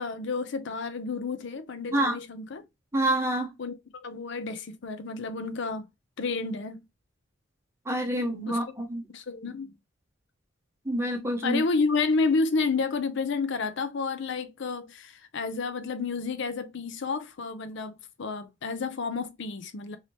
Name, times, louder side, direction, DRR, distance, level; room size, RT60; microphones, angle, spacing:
voice 1, 0.0-2.6 3.6-5.8 6.2-6.8 8.5-8.6 9.1-9.7 11.4-17.9 18.2-20.0, left 4 dB, 65° left, 0.5 m, -30 dB
voice 2, 2.9-3.5 7.9-9.0 10.8-11.6, right 1 dB, 15° right, 1.0 m, -27 dB
3.3 x 2.8 x 2.8 m
head